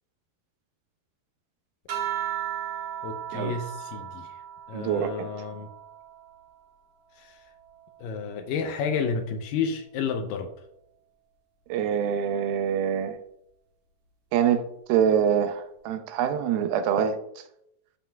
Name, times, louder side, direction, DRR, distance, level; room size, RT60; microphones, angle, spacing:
sound 1, 1.9-6.7 7.1-8.9 10.1-10.6, right 10 dB, 55° right, 2.6 m, -37 dB
voice 1, 3.0-4.3 4.7-5.7 7.2-7.4 8.0-10.5, left 6 dB, 80° left, 2.1 m, -31 dB
voice 2, 4.7-5.3 11.7-13.2 14.3-17.2, right 8 dB, 80° right, 2.4 m, -25 dB
13.0 x 5.1 x 2.3 m
omnidirectional pair, 4.3 m